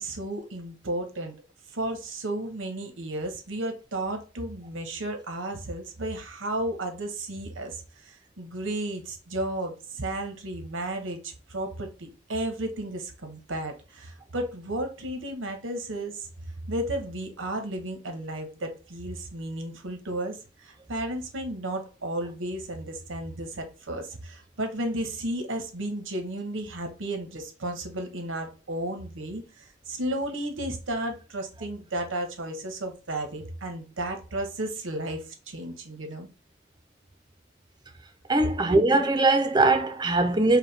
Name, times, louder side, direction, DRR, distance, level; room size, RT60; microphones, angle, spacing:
voice 1, 0.0-1.3 1.7-16.3 16.7-36.3, right 1 dB, 90° right, 1.0 m, -33 dB
voice 2, 38.3-40.6, right 2 dB, 20° right, 0.5 m, -21 dB
4.9 x 2.2 x 3.3 m
head